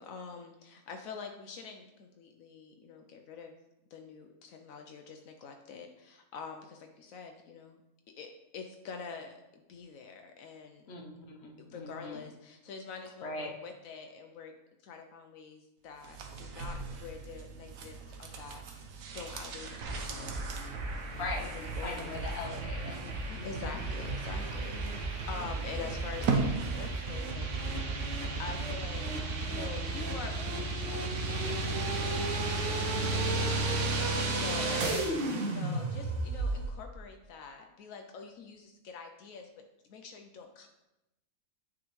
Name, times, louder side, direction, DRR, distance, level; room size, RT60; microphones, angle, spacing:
voice 1, 0.0-3.5 3.9-7.8 8.2-8.3 8.5-10.8 11.6-14.5 14.8-18.8 19.1-22.2 23.3-27.5 28.0-29.0 29.4-34.9 35.4-39.5 39.9-40.7, left 5 dB, 80° left, 4 dB, 1.0 m, -46 dB
voice 2, 10.9-12.2 13.2-13.5 21.2-23.8 34.6-35.0, left 3 dB, 55° left, 1 dB, 1.1 m, -41 dB
sound 1, 16.0-27.2 27.5-27.6, right 4 dB, 85° right, 1.2 m, -39 dB
sound 2, 19.8-36.7, right 2 dB, 65° right, 1.2 m, -33 dB
9.4 x 3.7 x 3.1 m, 0.95 s
omnidirectional pair, 1.4 m